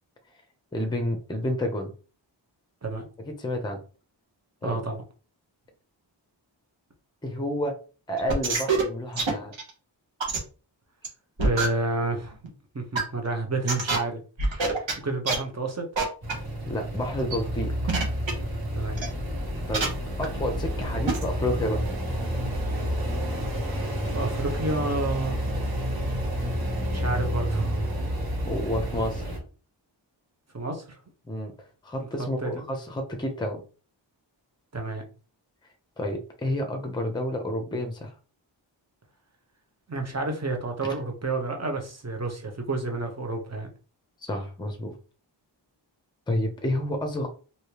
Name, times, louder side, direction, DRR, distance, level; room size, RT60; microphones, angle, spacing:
voice 1, 0.7-1.9 3.3-3.8 4.6-4.8 7.2-7.8 8.1-9.5 16.7-17.7 19.7-19.9 20.2-21.8 28.4-29.3 31.3-31.5 31.8-33.6 36.0-38.1 44.2-44.9 46.3-47.3, left 1 dB, 10° left, 5 dB, 0.7 m, -29 dB
voice 2, 4.6-5.0 11.4-12.4 12.7-15.9 18.7-19.0 24.1-25.4 26.9-27.8 30.5-31.0 32.0-32.1 32.4-32.6 34.7-35.0 39.9-43.7, right 2 dB, 35° right, 3 dB, 0.9 m, -30 dB
sound 1, 8.2-8.8 9.2-9.7 10.2-10.4 11.0-11.1 11.4-11.7 12.4-12.5 12.9-13.0 13.6-14.0 14.4-14.9 15.3-15.4 16.0-16.1 16.3-16.4 17.0-17.4 17.9-18.3 19.0-19.1 19.7-19.8 20.2-20.3 20.8-20.9 21.1-21.2, right 4 dB, 75° right, 1.1 m, -25 dB
sound 2, 16.2-29.4, equal, 50° right, 1.5 m, -29 dB
3.2 x 2.7 x 2.9 m, 0.36 s
wide cardioid pair, 60°, 46 cm